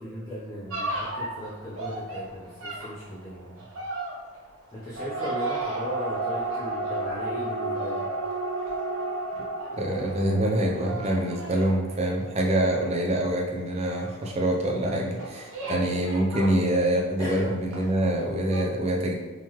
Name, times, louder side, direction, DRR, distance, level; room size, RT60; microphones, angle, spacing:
voice 1, 0.0-3.7 4.7-8.1 15.6-16.0 17.2-17.5, equal, 15° left, -9 dB, 0.6 m, -37 dB
sound 1, 0.7-17.4 17.7-18.2 18.5-18.6, right 2 dB, 80° right, 1.0 m, -33 dB
voice 2, 9.8-19.1, right 1 dB, 30° right, 0 dB, 0.5 m, -25 dB
3.8 x 2.9 x 3.0 m, 1.2 s
head